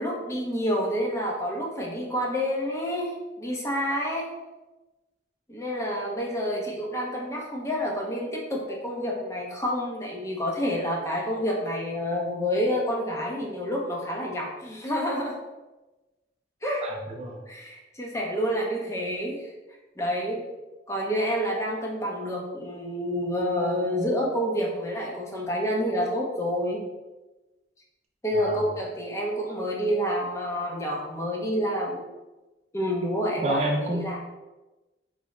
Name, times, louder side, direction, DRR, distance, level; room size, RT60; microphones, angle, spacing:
voice 1, 0.0-4.3 5.5-15.4 16.6-16.8 17.5-19.5 20.0-20.4 20.9-26.8 28.2-32.0 32.7-34.2, equal, 15° left, -2 dB, 0.5 m, -28 dB
voice 2, 16.8-17.5 28.4-28.6 33.4-34.2, right 1 dB, 35° right, 1 dB, 0.3 m, -29 dB
3.1 x 2.0 x 3.6 m, 1.1 s
head